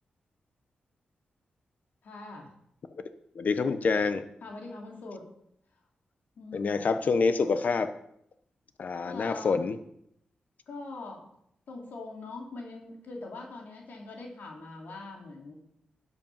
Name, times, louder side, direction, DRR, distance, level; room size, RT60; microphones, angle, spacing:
voice 1, 2.0-2.5 4.4-5.3 6.4-6.9 9.0-9.6 10.7-11.3 11.7-15.5, left 3 dB, 80° left, 0 dB, 2.9 m, -42 dB
voice 2, 3.3-4.2 6.5-7.9 8.8-9.8, left 4 dB, 60° left, 10 dB, 1.0 m, -26 dB
12.0 x 8.4 x 5.7 m, 0.74 s
cardioid pair, 70°, 3 cm